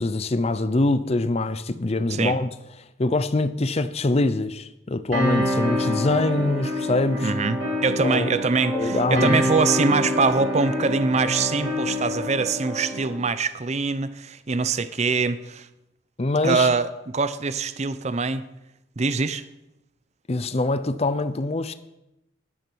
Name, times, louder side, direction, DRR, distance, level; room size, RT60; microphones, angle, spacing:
voice 1, 0.0-2.5 3.0-7.3 8.0-8.4 8.7-9.4 16.2-16.7 20.3-21.7, left 2 dB, 30° left, 0.6 m, -24 dB
sound 1, 5.1-13.2, left 1 dB, 65° right, 3.7 m, -26 dB
voice 2, 7.2-15.7 16.4-18.5 19.0-19.4, right 4 dB, 35° right, 0.6 m, -24 dB
11.0 x 11.0 x 6.2 m
head